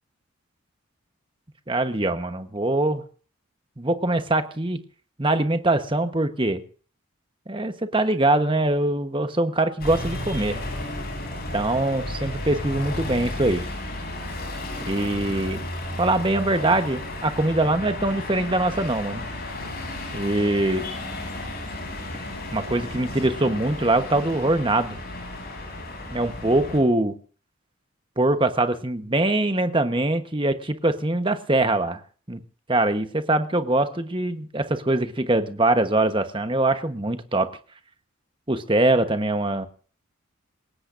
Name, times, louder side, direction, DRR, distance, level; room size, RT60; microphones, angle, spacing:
voice 1, 1.7-3.0 3.8-4.8 5.2-6.6 7.5-10.6 11.5-13.6 14.8-15.6 16.0-19.3 20.1-20.8 22.5-25.0 26.1-27.1 28.2-32.0 32.3-32.4 32.7-37.5 38.5-39.7, right 2 dB, 20° right, 9 dB, 1.1 m, -23 dB
sound 1, 9.8-26.8, left 1 dB, 45° left, 7.9 m, -33 dB
28.0 x 16.5 x 2.6 m, 0.40 s
head